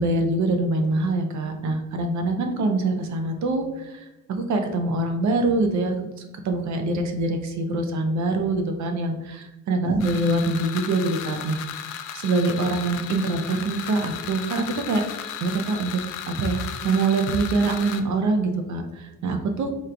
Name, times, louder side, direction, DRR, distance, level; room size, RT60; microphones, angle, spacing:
voice 1, 0.0-5.9 6.4-11.6 12.1-15.0 15.4-16.0 16.3-19.7, right 2 dB, 70° right, 5 dB, 0.7 m, -24 dB
sound 1, 10.0-18.0, left 9 dB, 85° left, 0.5 m, -35 dB
3.7 x 3.1 x 3.3 m, 1.0 s
cardioid pair, 90°, 30 cm